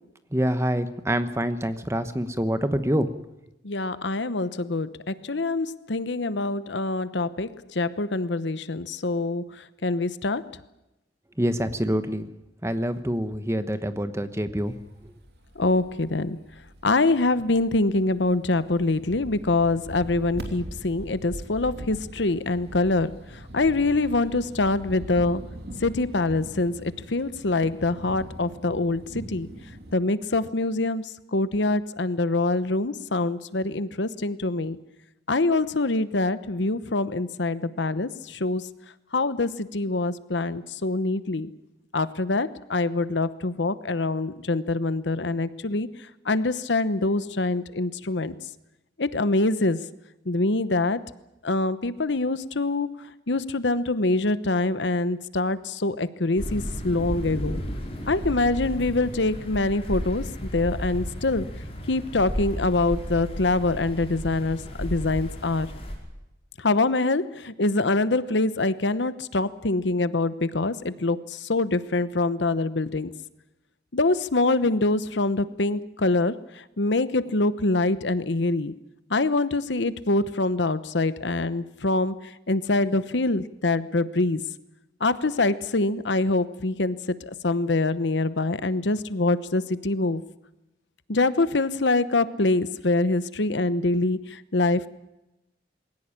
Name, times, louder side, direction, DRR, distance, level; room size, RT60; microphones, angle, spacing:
voice 1, 0.3-3.1 11.4-12.3 12.6-14.7, equal, 15° right, 10 dB, 1.1 m, -26 dB
voice 2, 3.6-10.5 15.6-16.4 16.8-23.1 23.5-25.4 25.8-29.5 29.9-34.8 35.3-38.7 39.1-41.5 41.9-45.9 46.3-48.3 49.0-49.8 50.3-51.0 51.4-52.9 53.3-57.6 58.1-61.5 61.9-65.7 66.6-73.1 73.9-76.4 76.8-78.7 79.1-82.1 82.5-84.4 85.0-90.2 91.1-94.9, left 2 dB, 75° left, 14 dB, 1.0 m, -25 dB
sound 1, 14.6-29.9, equal, 60° right, 3.0 m, -42 dB
sound 2, 56.4-66.0, equal, 30° left, 5.1 m, -33 dB
21.0 x 17.5 x 10.0 m, 0.95 s
head